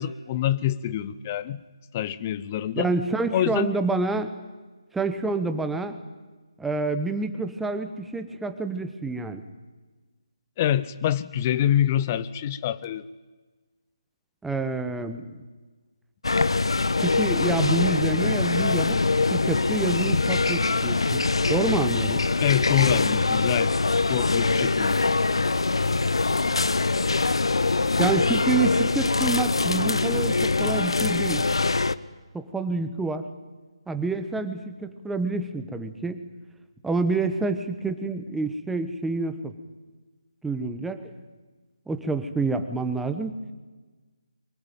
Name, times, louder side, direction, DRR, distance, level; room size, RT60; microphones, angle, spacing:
voice 1, 0.0-1.6 1.9-2.9 3.3-3.7 10.6-13.1 22.4-23.7 24.1-25.0, left 11 dB, 25° left, 16 dB, 0.8 m, -25 dB
voice 2, 2.8-4.3 4.9-6.0 6.6-9.4 14.4-15.2 17.0-19.0 19.3-21.2 21.5-22.2 28.0-31.5 32.3-33.3 33.9-36.2 36.8-39.5 40.4-41.1 41.9-43.3, right 3 dB, 5° right, 9 dB, 1.1 m, -28 dB
sound 1, 16.2-32.0, left 3 dB, 65° left, 0.9 m, -23 dB
24.0 x 21.0 x 9.2 m, 1.3 s
figure-of-eight pair, 150°, 3 cm